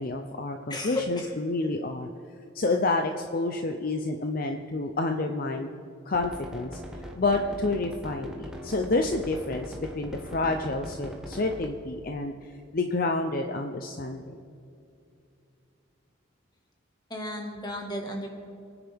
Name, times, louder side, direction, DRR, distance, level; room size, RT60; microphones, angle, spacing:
voice 1, 0.0-2.1 2.5-5.7 6.1-6.8 7.1-14.2, left 2 dB, 45° left, 4 dB, 0.6 m, -29 dB
voice 2, 0.7-1.3 17.1-18.3, left 1 dB, 20° left, 2 dB, 1.7 m, -33 dB
sound 1, 6.1-11.7, equal, 5° right, 1.3 m, -40 dB
26.0 x 9.8 x 3.5 m, 2.6 s
head